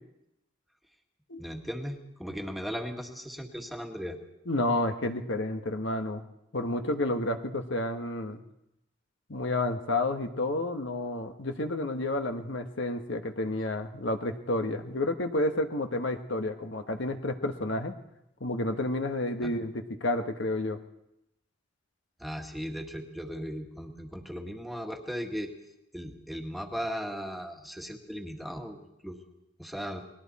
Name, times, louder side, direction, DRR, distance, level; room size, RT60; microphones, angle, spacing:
voice 1, 1.4-4.2 19.4-19.5 22.2-25.5 25.9-29.2 29.6-30.0, equal, ahead, 2 dB, 1.7 m, -37 dB
voice 2, 4.5-6.2 6.5-8.4 9.3-17.9 18.4-20.8, left 2 dB, 70° left, 6 dB, 1.4 m, -30 dB
30.0 x 21.0 x 4.2 m, 0.85 s
head